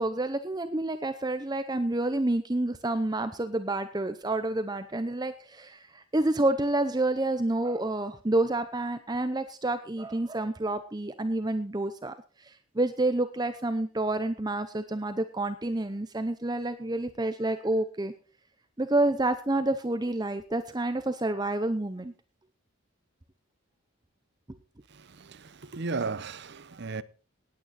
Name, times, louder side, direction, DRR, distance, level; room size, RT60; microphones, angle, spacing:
voice 1, 0.0-18.1 18.8-22.1, right 2 dB, 20° right, 0.7 m, -29 dB
voice 2, 24.9-27.0, right 4 dB, 50° right, 0.7 m, -35 dB
18.0 x 9.3 x 4.1 m
head